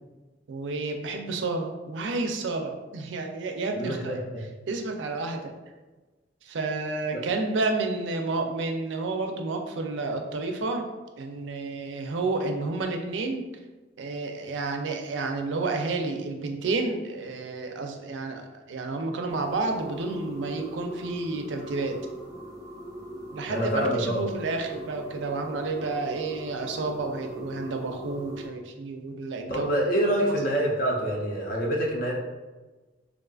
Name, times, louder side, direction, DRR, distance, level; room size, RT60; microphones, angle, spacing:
voice 1, 0.5-4.2 4.7-5.5 6.4-10.9 11.2-13.5 14.0-22.0 23.3-29.8, right 3 dB, 85° right, 4 dB, 0.4 m, -30 dB
voice 2, 3.8-4.4 7.1-7.2 23.5-24.2 29.5-32.2, right 1 dB, 50° left, -2 dB, 0.5 m, -26 dB
sound 1, 19.3-28.5, right 1 dB, 20° right, 0.5 m, -41 dB
3.6 x 2.4 x 2.3 m, 1.2 s
head